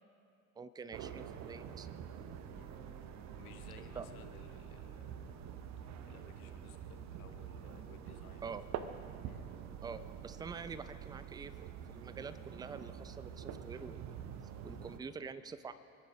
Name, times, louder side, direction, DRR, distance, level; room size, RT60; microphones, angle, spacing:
voice 1, 0.6-1.9 3.8-4.1 8.4-8.6 9.8-14.1 14.6-15.7, right 5 dB, 10° right, 13 dB, 0.6 m, -46 dB
sound 1, 0.9-15.0, right 9 dB, 40° right, 0.9 m, -47 dB
sound 2, 1.1-15.2, left 1 dB, 60° right, 3.1 m, -62 dB
voice 2, 3.4-5.5 5.8-8.6 9.2-9.4, left 9 dB, 70° left, 8 dB, 1.1 m, -59 dB
27.0 x 10.5 x 5.0 m, 2.5 s
figure-of-eight pair, 70°, 45 cm